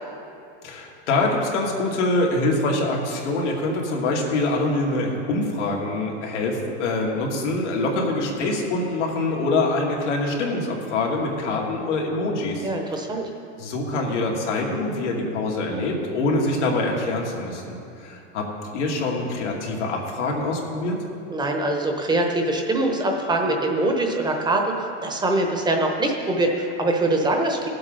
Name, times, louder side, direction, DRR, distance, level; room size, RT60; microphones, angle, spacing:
voice 1, 0.6-12.7 13.6-21.0, left 2 dB, 90° left, -1 dB, 2.4 m, -25 dB
voice 2, 12.6-13.3 21.3-27.7, right 2 dB, 10° right, 2 dB, 0.9 m, -23 dB
17.5 x 7.8 x 4.0 m, 2.6 s
supercardioid pair, 135°, 35 cm